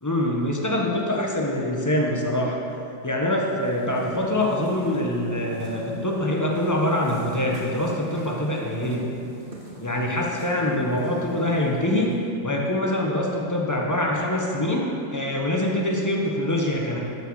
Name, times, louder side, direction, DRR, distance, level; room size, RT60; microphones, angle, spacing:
voice 1, 0.0-2.6 3.0-9.0 9.8-12.1 12.4-17.0, left 1 dB, 15° left, -1 dB, 0.7 m, -24 dB
sound 1, 3.4-12.4, right 1 dB, 30° right, 1.7 m, -38 dB
14.0 x 6.4 x 4.8 m, 2.8 s
omnidirectional pair, 2.0 m